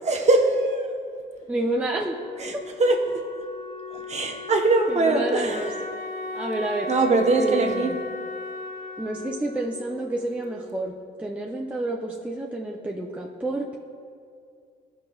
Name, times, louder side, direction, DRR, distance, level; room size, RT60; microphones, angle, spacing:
voice 1, 0.0-0.9 2.4-3.2 3.9-5.8 6.9-7.9, right 2 dB, 35° right, 2 dB, 0.9 m, -22 dB
voice 2, 1.5-2.2 4.9-5.7 6.3-6.9 7.4-8.0 9.0-10.9 11.2-13.8, right 1 dB, 5° right, -1 dB, 0.5 m, -29 dB
Wind instrument woodwind instrument, 2.2-10.8, left 2 dB, 90° left, 1.8 m, -36 dB
15.0 x 5.2 x 2.3 m, 2.3 s
cardioid pair, 90°, 20 cm